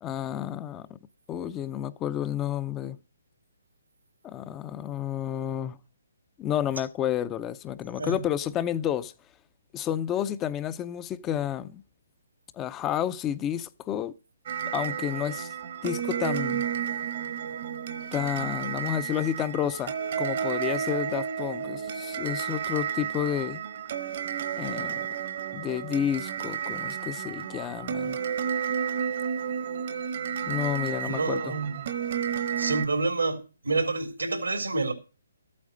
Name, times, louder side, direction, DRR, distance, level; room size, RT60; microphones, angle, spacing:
voice 1, 0.0-1.0 1.3-3.0 4.2-5.8 6.4-9.1 9.7-11.8 12.6-14.1 14.7-15.5 15.8-16.6 18.1-23.6 24.6-25.1 25.5-28.2 30.5-31.5, left 10 dB, 20° left, 0.6 m, -30 dB
sound 1, 14.5-32.9, right 8 dB, 50° right, 1.2 m, -32 dB
voice 2, 31.0-31.9 32.6-34.9, right 3 dB, 90° right, 3.3 m, -28 dB
13.5 x 8.7 x 6.5 m
hypercardioid pair, 145°, 0 cm